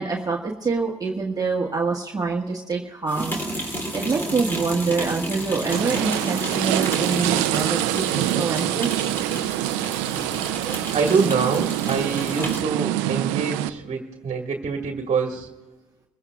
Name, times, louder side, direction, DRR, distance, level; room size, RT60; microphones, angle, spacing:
voice 1, 0.0-3.4 3.9-8.9, right 4 dB, 25° right, -1 dB, 1.5 m, -25 dB
sound 1, 3.1-12.7, equal, 15° left, 3.1 m, -32 dB
sound 2, 5.7-13.7, right 15 dB, 80° right, 0.5 m, -25 dB
voice 2, 10.6-15.5, right 5 dB, 45° right, 2 dB, 1.7 m, -25 dB
26.0 x 15.5 x 2.4 m, 1.2 s
supercardioid pair, 70°, 15 cm